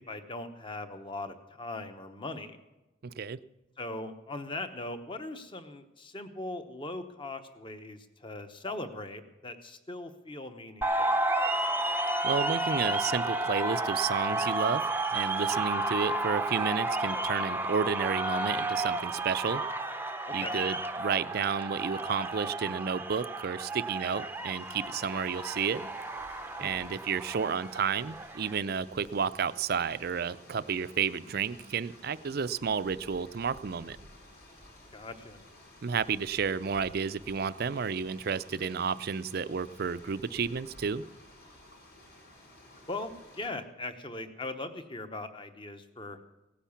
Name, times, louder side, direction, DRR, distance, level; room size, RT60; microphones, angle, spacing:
voice 1, 0.1-2.6 3.8-11.2 20.3-20.6 26.6-26.7 34.9-35.4 42.9-46.2, left 2 dB, 25° left, 9 dB, 1.0 m, -40 dB
voice 2, 3.0-3.4 12.2-19.6 20.3-25.9 26.6-34.0 35.8-41.0, right 6 dB, 55° right, 15 dB, 0.5 m, -31 dB
sound 1, 10.8-28.6, right 2 dB, 10° right, 0.6 m, -32 dB
sound 2, 23.9-43.5, left 1 dB, 55° left, 5.4 m, -54 dB
17.5 x 10.0 x 7.2 m, 0.99 s
head